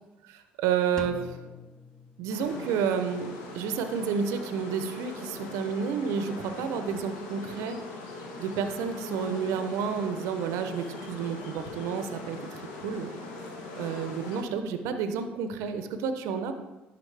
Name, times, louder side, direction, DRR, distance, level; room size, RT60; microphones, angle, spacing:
voice 1, 0.2-1.4 2.2-3.3 3.5-7.8 8.4-13.1 13.8-16.5, right 7 dB, 75° right, 8 dB, 0.6 m, -30 dB
Drum, 1.0-2.9, left 4 dB, 15° left, 0.6 m, -44 dB
sound 1, 2.3-14.4, left 3 dB, 75° left, 1.1 m, -41 dB
10.5 x 4.0 x 3.3 m, 1.1 s
hypercardioid pair, 60°, 5 cm